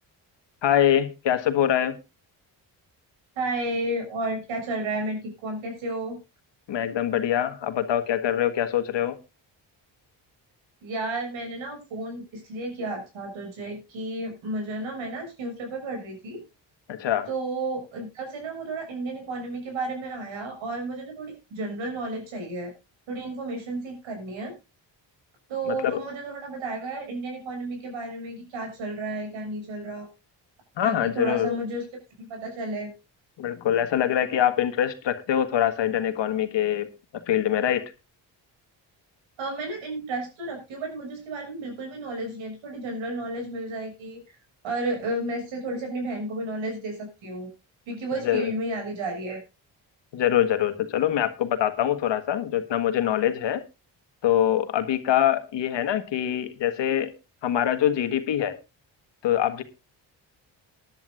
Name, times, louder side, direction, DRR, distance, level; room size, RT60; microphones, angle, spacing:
voice 1, 0.6-2.0 6.7-9.2 16.9-17.3 25.7-26.0 30.8-31.6 33.4-37.9 48.2-48.5 50.1-53.6 54.2-57.1 57.4-58.6 59.2-59.6, left 10 dB, 70° left, 1.7 m, -24 dB
voice 2, 3.3-6.2 10.8-16.4 17.3-22.7 23.1-24.5 25.5-30.1 30.8-31.8 32.2-32.9 39.4-44.2 44.6-47.5 47.9-49.4, right 2 dB, 80° right, 6.7 m, -32 dB
20.0 x 10.5 x 2.5 m
supercardioid pair, 60°, 45 cm